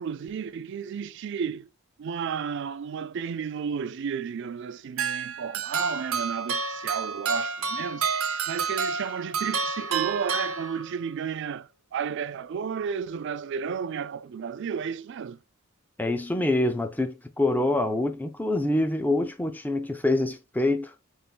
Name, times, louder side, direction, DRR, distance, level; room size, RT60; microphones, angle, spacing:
voice 1, 0.0-1.7 2.0-8.1 8.5-15.4, right 6 dB, 55° right, 0.4 m, -32 dB
sound 1, 5.0-11.1, right 5 dB, 80° right, 0.8 m, -29 dB
voice 2, 16.0-20.9, left 2 dB, 10° left, 0.4 m, -25 dB
5.5 x 3.0 x 2.2 m
head